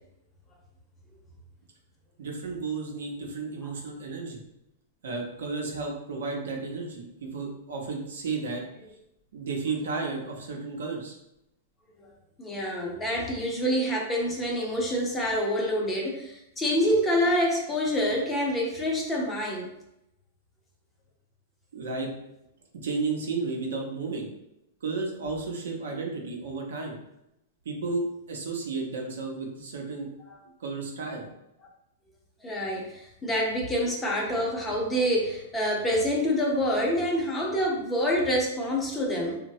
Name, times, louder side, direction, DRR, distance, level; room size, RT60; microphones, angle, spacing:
voice 1, 2.2-4.4 5.0-8.6 9.3-11.2 21.7-22.1 22.8-24.3 24.8-27.0 27.6-30.1 30.6-31.3, right 4 dB, 85° right, 0 dB, 0.7 m, -33 dB
voice 2, 12.4-19.7 32.4-39.4, equal, 10° left, -2 dB, 0.5 m, -27 dB
3.0 x 2.1 x 2.7 m, 0.84 s
hypercardioid pair, 150°, 0 cm